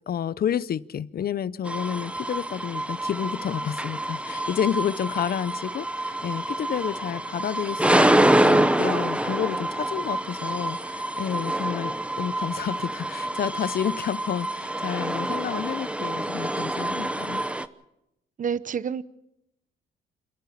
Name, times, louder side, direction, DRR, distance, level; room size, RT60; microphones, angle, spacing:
voice 1, 0.1-17.5, left 9 dB, 50° left, 19 dB, 0.7 m, -30 dB
sound 1, 1.7-17.7, right 1 dB, 5° right, 0.9 m, -26 dB
voice 2, 18.4-19.0, right 7 dB, 40° right, 16 dB, 0.9 m, -28 dB
28.5 x 11.0 x 8.5 m, 0.86 s
cardioid pair, 90°, 20 cm